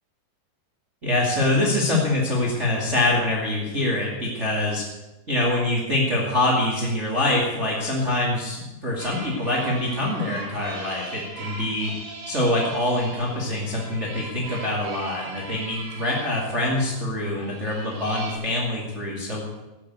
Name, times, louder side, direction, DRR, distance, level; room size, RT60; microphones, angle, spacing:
voice 1, 1.0-4.8 5.3-11.9 12.2-19.4, left 1 dB, 25° right, -2 dB, 1.5 m, -24 dB
sound 1, 9.0-18.3, right 3 dB, 80° right, 5.7 m, -40 dB
14.5 x 8.3 x 8.1 m, 1.0 s
omnidirectional pair, 5.2 m